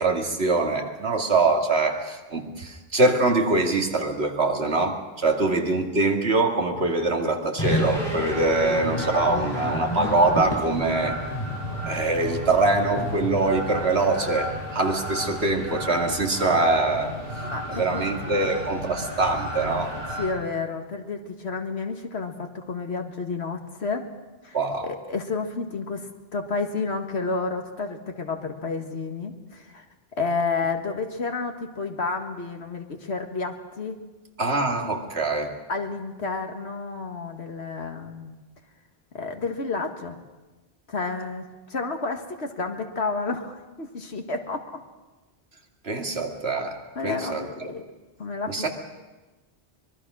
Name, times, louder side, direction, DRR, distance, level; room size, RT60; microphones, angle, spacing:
voice 1, 0.0-11.2 11.9-17.2 17.7-19.9 24.5-24.9 34.4-35.5 45.8-46.8 47.0-47.4 48.5-48.7, right 2 dB, 75° right, 3 dB, 2.5 m, -23 dB
sound 1, 7.6-14.0, equal, 25° left, 5.5 m, -31 dB
sound 2, 7.8-20.3, equal, 60° right, 8.0 m, -34 dB
voice 2, 17.5-18.3 20.2-24.1 24.4-29.8 30.2-34.0 35.7-38.3 39.1-40.2 40.9-44.6 47.0-47.8 48.2-48.7, left 4 dB, 85° left, 5 dB, 2.1 m, -30 dB
25.0 x 21.5 x 6.2 m, 1.2 s
omnidirectional pair, 1.1 m